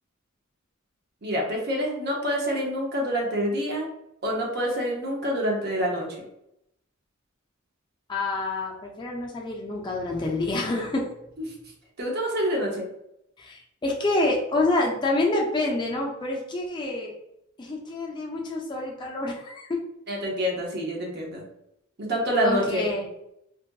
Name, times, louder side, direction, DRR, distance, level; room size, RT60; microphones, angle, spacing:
voice 1, 1.2-3.9 4.2-6.3 12.0-12.9 20.1-21.4 22.0-22.8, equal, 50° right, -1 dB, 0.7 m, -27 dB
voice 2, 8.1-11.1 13.4-17.1 17.6-19.8 22.4-23.1, left 2 dB, 20° left, -1 dB, 0.3 m, -27 dB
2.6 x 2.5 x 2.2 m, 0.80 s
head